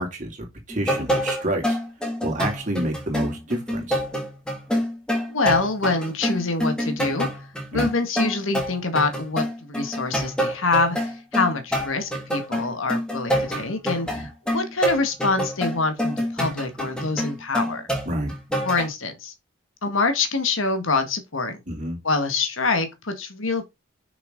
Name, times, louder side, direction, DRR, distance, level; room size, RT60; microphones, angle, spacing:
voice 1, 0.0-1.8 2.2-4.0 7.7-7.9 14.0-14.3 18.1-18.3 21.7-22.0, right 1 dB, 35° right, 2.8 m, -28 dB
sound 1, 0.7-18.9, equal, 5° left, 2.4 m, -27 dB
voice 2, 5.3-7.3 7.7-17.9 18.6-19.3 19.8-21.6 22.0-23.7, left 3 dB, 75° left, 1.7 m, -25 dB
6.7 x 5.8 x 3.8 m
head